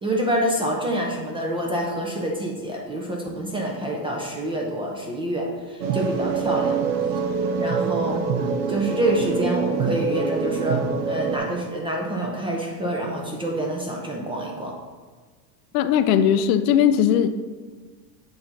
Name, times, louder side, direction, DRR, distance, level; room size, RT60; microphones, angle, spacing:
voice 1, 0.0-6.8 7.6-8.2 8.7-14.8, right 1 dB, 10° right, -1 dB, 0.4 m, -27 dB
sound 1, 5.8-11.4, right 5 dB, 80° right, 0.9 m, -25 dB
voice 2, 15.7-17.3, left 9 dB, 60° left, 10 dB, 0.5 m, -18 dB
7.8 x 2.7 x 5.8 m, 1.5 s
supercardioid pair, 120°, 50 cm